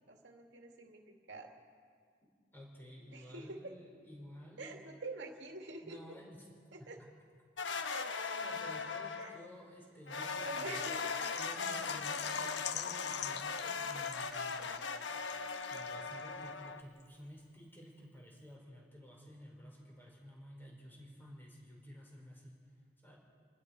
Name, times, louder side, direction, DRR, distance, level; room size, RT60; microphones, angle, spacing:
voice 1, 0.1-1.5 3.1-3.6 4.6-6.0 6.7-6.9 7.8-8.1 9.2-9.3 10.1-10.9, right 2 dB, 75° right, 2 dB, 2.4 m, -46 dB
voice 2, 2.5-4.8 5.8-6.5 6.8-6.9 8.4-11.0 11.4-14.9 15.6-23.2, equal, 10° left, -2 dB, 5.2 m, -53 dB
sound 1, 7.6-9.5 10.1-16.8, left 4 dB, 80° left, 1.1 m, -39 dB
Water / Liquid, 10.6-16.2 16.5-16.6 17.0-17.1, left 9 dB, 60° left, 0.5 m, -45 dB
29.0 x 20.0 x 4.9 m, 2.1 s
head